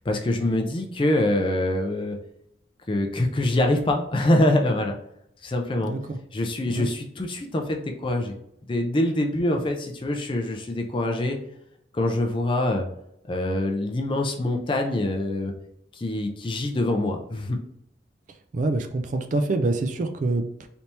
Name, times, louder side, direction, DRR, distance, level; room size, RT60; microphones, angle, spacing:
voice 1, 0.1-2.2 2.9-5.0 5.4-5.9 6.3-8.4 8.7-11.4 11.9-12.9 13.3-15.5 15.9-17.6, left 1 dB, 25° left, 2 dB, 0.4 m, -24 dB
voice 2, 5.8-6.2 6.7-6.9 18.5-20.7, right 2 dB, 40° right, 7 dB, 0.3 m, -26 dB
3.4 x 2.7 x 2.8 m, 0.77 s
head